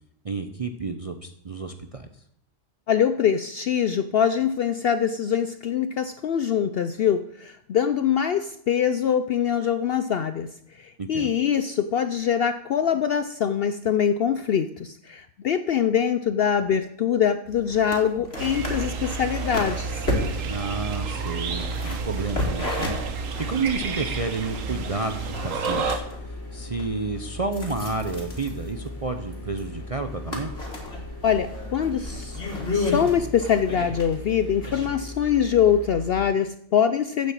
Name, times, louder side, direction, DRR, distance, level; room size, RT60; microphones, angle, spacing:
voice 1, 0.2-2.1 11.0-11.3 20.4-30.5, right 3 dB, 40° right, 6 dB, 0.5 m, -31 dB
voice 2, 2.9-20.0 31.2-32.4 32.7-37.3, left 8 dB, 65° left, 11 dB, 0.6 m, -23 dB
sound 1, 17.5-34.9, left 2 dB, 45° left, 2.7 m, -34 dB
sound 2, 18.4-26.0, right 4 dB, 70° right, 1.3 m, -30 dB
sound 3, 24.0-36.3, left 1 dB, 10° left, 2.5 m, -38 dB
8.5 x 7.7 x 7.3 m, 0.72 s
omnidirectional pair, 1.4 m